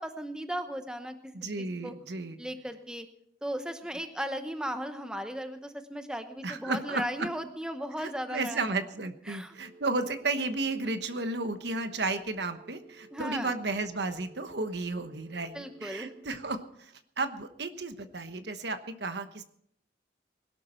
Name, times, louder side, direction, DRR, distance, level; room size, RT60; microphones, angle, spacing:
voice 1, 0.0-1.3 1.6-1.9 2.4-3.1 3.4-8.6 9.3-9.5 13.1-13.5 15.5-16.1, equal, 5° right, 7 dB, 0.9 m, -36 dB
voice 2, 1.3-2.4 6.4-7.0 8.0-19.4, right 3 dB, 65° right, 9 dB, 1.1 m, -33 dB
Telephone, 9.5-16.3, right 2 dB, 85° right, 6.1 m, -55 dB
21.0 x 12.0 x 4.4 m, 0.68 s
head